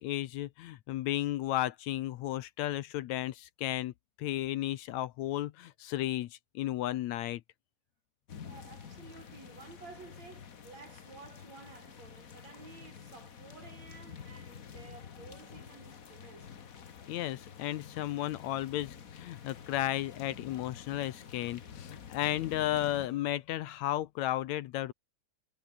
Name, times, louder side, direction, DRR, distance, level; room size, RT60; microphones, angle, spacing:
voice 1, 0.0-3.9 4.2-7.4 17.1-24.9, left 14 dB, 75° left, 2.0 m, -34 dB
sound 1, 8.3-23.1, left 7 dB, 50° left, 1.0 m, -49 dB
voice 2, 8.4-16.5, right 4 dB, 60° right, 6.7 m, -53 dB
omnidirectional pair, 3.4 m